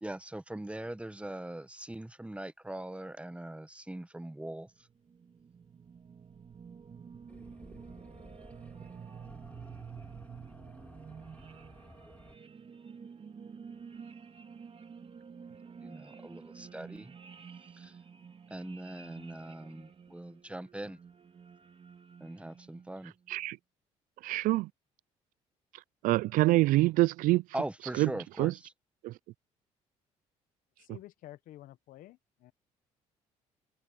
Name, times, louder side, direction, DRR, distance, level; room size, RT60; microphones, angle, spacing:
voice 1, 0.0-4.7 15.8-17.1 17.8-17.9 18.5-21.0 22.2-23.1 27.5-28.7, right 1 dB, 10° right, 1.1 m, -41 dB
sound 1, 4.7-23.1, right 6 dB, 40° right, 2.8 m, -50 dB
sound 2, 7.3-12.4, left 1 dB, 10° left, 3.1 m, -54 dB
voice 2, 24.2-24.7 26.0-27.4 27.9-28.1 28.4-28.5 29.0-29.1, right 18 dB, 75° right, 0.4 m, -25 dB
voice 3, 30.8-32.5, left 15 dB, 75° left, 1.3 m, -51 dB
supercardioid pair, 70°, 14 cm